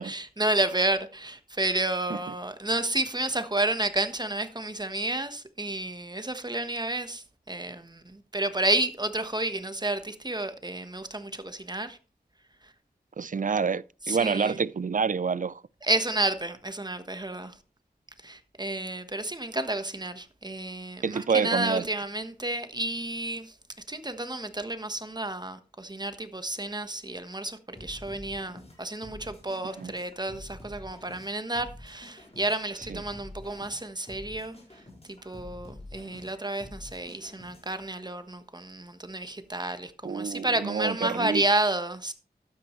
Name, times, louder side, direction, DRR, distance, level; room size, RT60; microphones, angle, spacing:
voice 1, 0.0-12.0 14.1-14.6 15.8-17.5 18.2-23.5 23.9-34.5 35.1-42.1, right 2 dB, 25° right, 1.2 m, -31 dB
voice 2, 13.2-15.6 21.0-21.9 29.8-29.9 32.9-33.0 40.0-41.4, right 5 dB, 50° right, 0.4 m, -28 dB
sound 1, 27.8-37.9, left 1 dB, 35° left, 4.5 m, -47 dB
12.5 x 9.6 x 3.2 m
wide cardioid pair, 70°, 18 cm